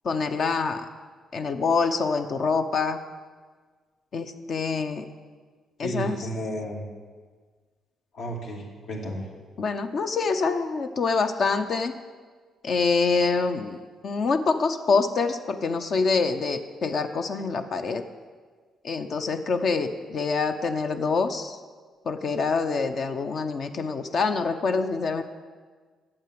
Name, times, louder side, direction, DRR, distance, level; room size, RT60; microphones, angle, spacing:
voice 1, 0.0-0.9 1.3-3.0 4.1-5.0 5.8-6.2 9.6-11.9 12.6-18.0 18.8-21.6 22.1-25.2, left 4 dB, 55° left, 7 dB, 0.7 m, -26 dB
voice 2, 5.8-6.9 8.1-9.3, equal, 75° left, -2 dB, 2.6 m, -32 dB
8.9 x 7.8 x 7.6 m, 1.5 s
cardioid pair, 90°, 0 cm